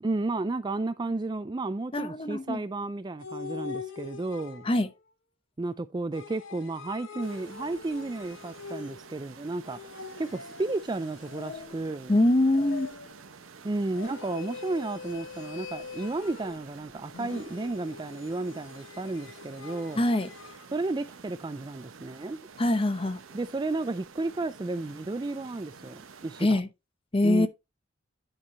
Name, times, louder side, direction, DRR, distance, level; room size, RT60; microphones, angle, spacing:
voice 1, 0.0-4.7 5.6-12.1 13.6-20.0 20.7-22.4 23.3-26.6 27.2-27.5, right 2 dB, 20° right, 0.3 m, -33 dB
voice 2, 1.9-2.6 4.6-4.9 12.1-12.9 19.9-20.3 22.6-23.2 26.4-26.7 27.1-27.5, left 1 dB, 25° left, 0.8 m, -24 dB
sound 1, 3.2-4.9 6.1-9.2 9.7-12.0 12.5-13.2 13.9-16.7 17.1-20.7, left 5 dB, 70° left, 1.1 m, -43 dB
sound 2, 7.2-26.5, right 5 dB, 80° right, 0.9 m, -50 dB
9.8 x 4.7 x 4.2 m
head